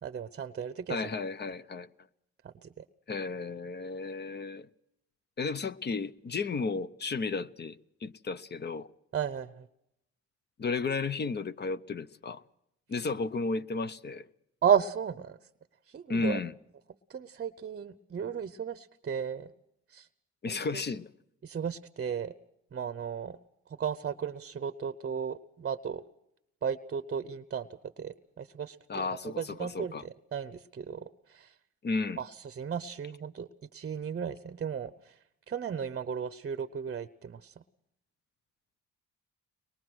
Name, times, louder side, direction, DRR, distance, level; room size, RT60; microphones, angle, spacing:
voice 1, 0.0-1.0 2.4-2.8 9.1-9.7 14.6-15.4 15.9-16.4 17.1-19.5 19.9-20.1 20.5-20.8 21.4-22.3 22.7-23.4 23.7-26.0 26.6-27.7 28.0-31.5 32.2-35.2 35.5-37.5, right 7 dB, 35° right, 0.8 m, -34 dB
voice 2, 0.9-1.9 3.1-4.7 5.4-8.9 10.6-12.4 12.9-14.2 16.1-16.5 20.4-21.1 28.9-30.0 31.8-32.2, left 4 dB, 35° left, 0.8 m, -33 dB
23.5 x 21.0 x 6.2 m
cardioid pair, 90°, 30 cm